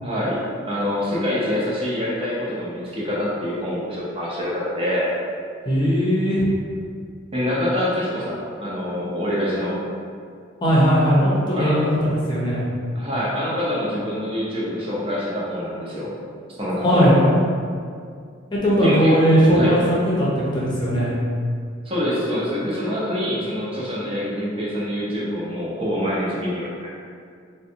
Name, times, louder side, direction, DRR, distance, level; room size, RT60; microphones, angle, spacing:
voice 1, 0.0-5.1 7.3-9.8 11.5-11.9 13.0-16.1 16.6-17.3 18.8-19.2 19.5-19.7 21.8-26.9, equal, 25° right, -7 dB, 0.6 m, -25 dB
voice 2, 5.6-6.5 10.6-12.6 16.8-17.2 18.5-21.1, equal, 25° left, -7 dB, 0.7 m, -18 dB
3.8 x 2.2 x 2.7 m, 2.2 s
head